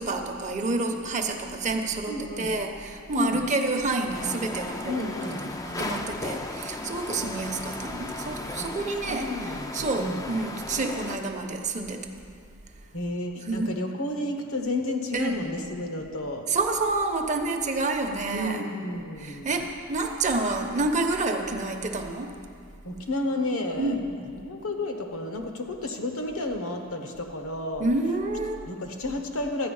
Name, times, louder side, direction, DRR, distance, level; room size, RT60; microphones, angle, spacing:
voice 1, 0.0-5.1 5.5-12.0 13.4-13.7 15.1-15.4 16.5-18.7 19.2-22.3 23.8-24.1 27.8-28.6, right 3 dB, 35° right, 4 dB, 0.9 m, -28 dB
voice 2, 2.1-2.6 3.1-3.5 4.9-5.6 8.6-8.7 9.0-10.3 12.9-16.5 18.3-19.7 22.8-23.9 24.3-27.9 28.7-29.7, left 2 dB, 65° left, 4 dB, 1.2 m, -31 dB
sound 1, 4.1-11.2, left 2 dB, 15° left, 0.5 m, -36 dB
13.0 x 9.3 x 5.5 m, 2.3 s
head